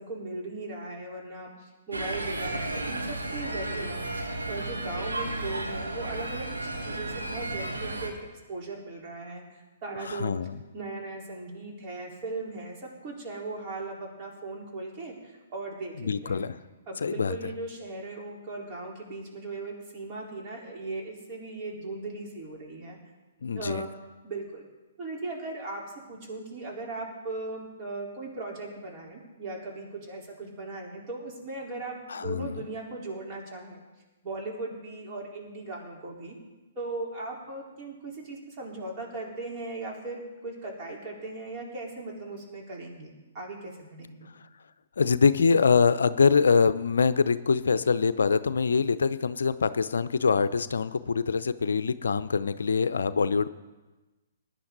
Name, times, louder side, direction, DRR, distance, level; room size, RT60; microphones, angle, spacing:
voice 1, 0.0-6.5 6.8-10.4 10.7-16.5 16.9-23.0 23.5-23.9 24.2-24.7 25.0-33.8 34.2-36.4 36.8-44.3, right 2 dB, 35° right, -2 dB, 4.1 m, -38 dB
sound 1, 1.9-8.1, right 2 dB, 85° right, 2.3 m, -33 dB
voice 2, 10.0-10.6 16.0-16.6 17.0-17.4 23.4-23.8 32.1-32.6 45.0-53.5, left 5 dB, 70° left, 13 dB, 0.5 m, -24 dB
20.0 x 10.0 x 4.0 m, 1.2 s
figure-of-eight pair, 120°, 0 cm